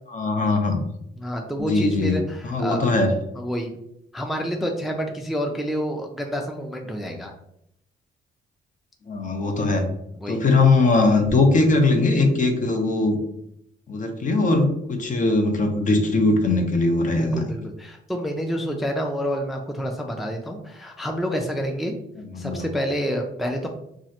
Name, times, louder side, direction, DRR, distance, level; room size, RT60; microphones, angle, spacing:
voice 1, 0.1-0.8 1.6-2.2 2.4-3.1 9.1-9.8 10.3-13.2 13.9-17.5 22.2-22.7, left 3 dB, 40° left, 5 dB, 0.6 m, -20 dB
voice 2, 1.2-2.9 3.4-3.8 4.1-7.3 10.2-10.4 17.2-21.9 22.4-23.7, equal, ahead, 3 dB, 0.3 m, -28 dB
3.1 x 2.4 x 2.7 m, 0.76 s
cardioid pair, 90°, 20 cm